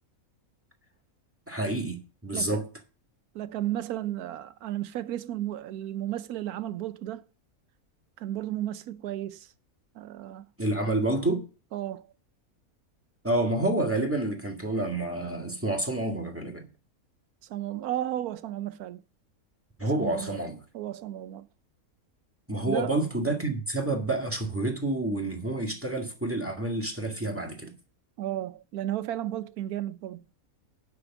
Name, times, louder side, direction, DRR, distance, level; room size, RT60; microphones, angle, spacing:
voice 1, 1.5-2.7 10.6-11.5 13.2-16.6 19.8-20.6 22.5-27.7, right 2 dB, 10° right, 1.9 m, -29 dB
voice 2, 3.3-7.2 8.2-9.5 9.9-10.5 11.7-12.1 17.5-19.0 19.8-20.4 20.7-21.5 22.7-23.0 28.2-30.2, right 13 dB, 90° right, 1.2 m, -33 dB
9.9 x 6.0 x 7.1 m
omnidirectional pair, 1.5 m